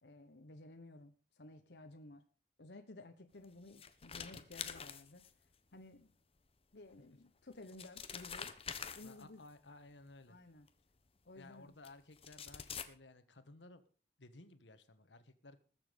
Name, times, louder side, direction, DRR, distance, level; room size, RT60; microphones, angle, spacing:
voice 1, 0.0-2.2 2.6-5.2 5.7-6.1 6.7-8.5 8.9-9.4 10.3-10.7 11.3-11.7, left 2 dB, 70° left, 6 dB, 1.1 m, -55 dB
sound 1, 3.4-5.5 6.9-7.0 7.5-9.5 10.7-10.8 11.8-11.9 12.2-12.8, left 7 dB, 35° left, 1.1 m, -46 dB
voice 2, 9.0-10.4 11.3-13.8 14.2-15.6, left 2 dB, 90° left, 11 dB, 1.5 m, -57 dB
20.0 x 7.4 x 5.2 m, 0.39 s
head